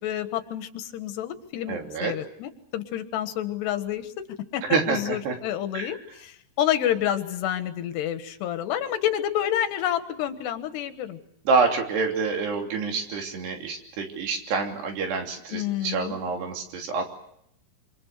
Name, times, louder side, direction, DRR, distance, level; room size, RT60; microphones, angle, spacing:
voice 1, 0.0-4.3 4.5-11.2 15.5-16.2, left 11 dB, 90° left, 9 dB, 3.6 m, -29 dB
voice 2, 1.7-2.1 4.7-5.4 5.7-6.0 11.5-17.1, right 4 dB, 80° right, 3 dB, 5.2 m, -27 dB
26.5 x 26.0 x 6.7 m, 0.75 s
omnidirectional pair, 4.7 m